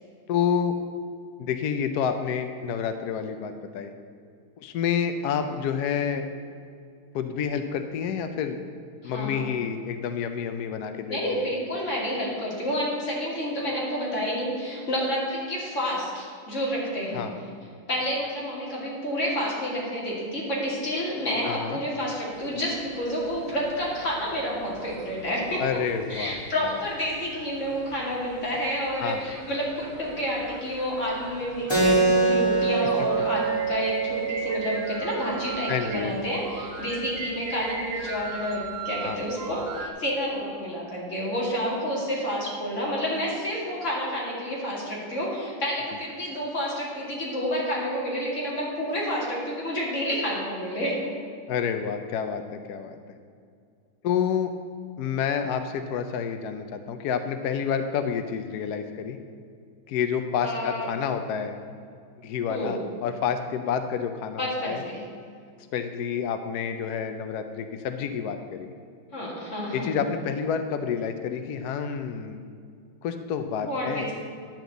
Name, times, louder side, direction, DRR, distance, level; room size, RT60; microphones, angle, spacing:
voice 1, 0.3-0.8 1.4-3.9 4.6-6.3 7.1-8.6 9.0-11.5 17.1-17.3 21.4-21.8 25.6-26.4 29.0-29.2 35.7-36.2 39.0-39.2 51.5-53.2 54.0-54.5 55.0-59.2 59.9-61.6 62.2-64.8 65.7-68.7 69.7-72.4 73.0-74.1, left 7 dB, 80° left, 8 dB, 0.9 m, -29 dB
voice 2, 9.0-9.4 11.1-17.3 17.9-25.8 26.1-51.0 60.4-60.9 62.5-62.7 64.4-65.0 69.1-70.0 73.6-74.1, equal, 35° left, -5 dB, 2.7 m, -29 dB
sound 1, 22.3-39.9, right 4 dB, 85° right, 2.0 m, -40 dB
Keyboard (musical), 31.7-36.8, right 4 dB, 15° left, 1.7 m, -25 dB
10.5 x 4.5 x 7.8 m, 2.3 s
omnidirectional pair, 2.3 m